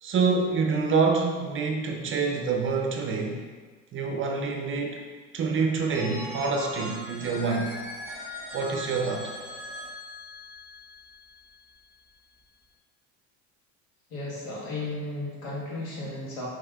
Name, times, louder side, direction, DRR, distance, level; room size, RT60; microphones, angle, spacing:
voice 1, 0.0-3.4 3.9-5.0 5.3-7.7 8.5-9.3, right 4 dB, 35° right, 2 dB, 0.5 m, -26 dB
Telephone, 5.9-11.7, left 1 dB, 10° right, 1.0 m, -40 dB
voice 2, 14.1-16.5, left 2 dB, 80° left, -5 dB, 1.4 m, -34 dB
5.4 x 2.8 x 2.3 m, 1.5 s
hypercardioid pair, 85°, 38 cm